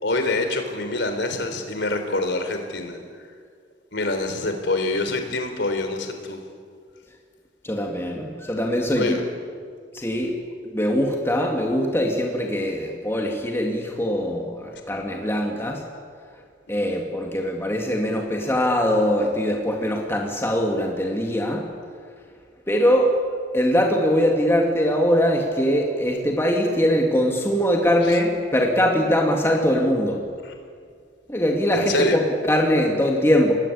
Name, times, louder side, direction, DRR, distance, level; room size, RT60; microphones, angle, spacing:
voice 1, 0.0-3.0 3.9-6.4 9.0-9.2 28.0-28.2 30.4-30.5 31.7-32.2, left 2 dB, 70° left, 6 dB, 3.8 m, -26 dB
voice 2, 7.6-9.2 9.9-10.4 10.7-15.8 16.7-21.7 22.7-23.2 23.5-30.2 31.3-33.5, equal, 15° left, 0 dB, 2.5 m, -22 dB
28.0 x 21.5 x 8.7 m, 2.1 s
head